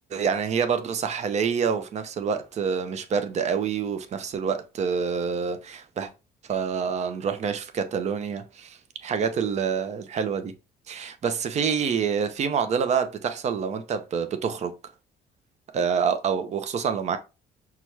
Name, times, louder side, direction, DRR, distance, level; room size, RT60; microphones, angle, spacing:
voice 1, 0.1-6.1 6.4-10.5 10.9-14.7 15.7-17.2, right 6 dB, 40° right, 0.6 m, -27 dB
5.7 x 2.3 x 3.1 m
cardioid pair, 110°, 17 cm